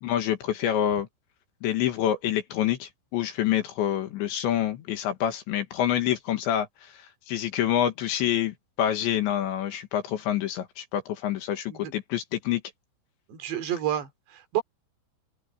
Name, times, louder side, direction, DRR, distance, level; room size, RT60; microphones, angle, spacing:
voice 1, 0.0-1.1 1.6-12.6, left 11 dB, 70° left, 3.6 m, -27 dB
voice 2, 13.3-14.6, right 10 dB, 60° right, 4.7 m, -30 dB
open air
omnidirectional pair, 5.9 m